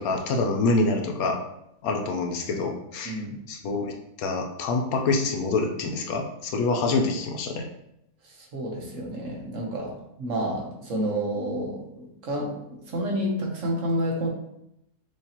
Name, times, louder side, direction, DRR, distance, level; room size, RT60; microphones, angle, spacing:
voice 1, 0.0-1.4 1.8-3.1 3.5-7.7, left 3 dB, 75° left, 3 dB, 1.1 m, -26 dB
voice 2, 3.0-3.4 8.4-9.9 10.2-12.6 12.9-14.3, right 1 dB, 60° right, -1 dB, 1.3 m, -29 dB
6.3 x 2.8 x 2.9 m, 0.79 s
omnidirectional pair, 1.6 m